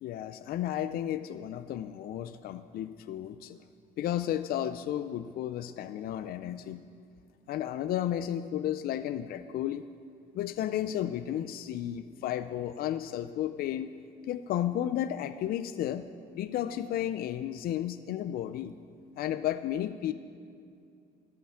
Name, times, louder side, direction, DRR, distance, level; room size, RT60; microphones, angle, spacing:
voice 1, 0.0-3.6 4.0-6.8 7.5-9.8 10.3-13.9 14.3-18.7 19.2-20.1, left 11 dB, 60° left, 11 dB, 0.5 m, -33 dB
13.5 x 5.9 x 9.1 m, 2.4 s
cardioid pair, 110°, 17 cm